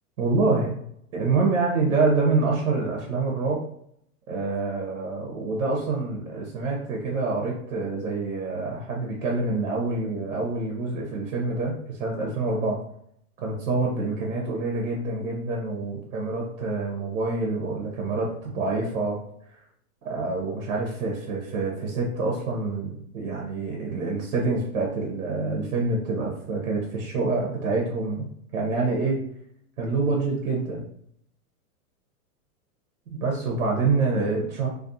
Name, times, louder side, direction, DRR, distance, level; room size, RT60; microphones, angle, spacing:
voice 1, 0.2-0.8 1.1-3.6 4.3-12.8 13.4-19.2 19.5-19.6 20.0-28.3 28.5-29.2 29.8-30.8 33.1-34.7, right 3 dB, 65° right, -1 dB, 0.8 m, -26 dB
2.4 x 2.2 x 2.6 m, 0.69 s
supercardioid pair, 155°, 44 cm